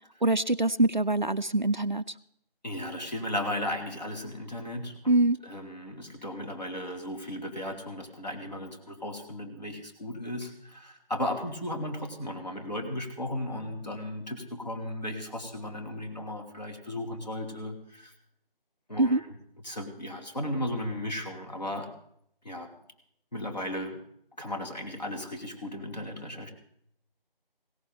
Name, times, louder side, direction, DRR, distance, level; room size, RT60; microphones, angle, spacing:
voice 1, 0.2-2.1 5.1-5.4 19.0-19.2, right 2 dB, 50° right, 12 dB, 0.5 m, -24 dB
voice 2, 2.6-5.1 5.4-18.1 18.9-19.2 19.6-21.9 22.4-22.7 23.3-24.0 24.4-26.5, left 1 dB, 45° left, 2 dB, 2.9 m, -35 dB
17.5 x 17.5 x 3.9 m, 0.69 s
figure-of-eight pair, 170°, 29 cm